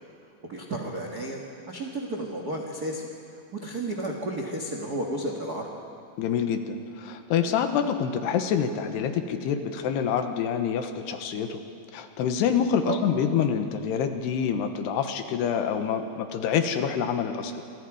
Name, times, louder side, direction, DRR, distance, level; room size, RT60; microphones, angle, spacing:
voice 1, 0.5-1.4 1.7-3.0 3.6-5.7 12.8-13.0, right 1 dB, 75° right, 1 dB, 0.8 m, -32 dB
voice 2, 6.2-11.6 11.9-17.6, left 7 dB, 75° left, 7 dB, 3.1 m, -26 dB
26.5 x 26.5 x 5.0 m, 2.5 s
omnidirectional pair, 5.0 m